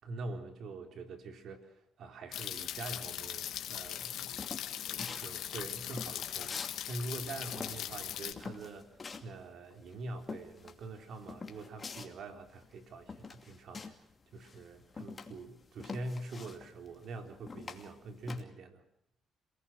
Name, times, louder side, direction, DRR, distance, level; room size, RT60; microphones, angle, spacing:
voice 1, 0.0-4.5 4.8-18.8, right 2 dB, 65° right, 5 dB, 4.1 m, -44 dB
sound 1, 2.3-8.3, left 11 dB, 80° left, 2.3 m, -40 dB
sound 2, 3.8-6.8 7.0-14.1 14.4-18.4, left 4 dB, 35° left, 2.6 m, -46 dB
27.5 x 19.0 x 6.4 m, 0.75 s
cardioid pair, 90°, 0 cm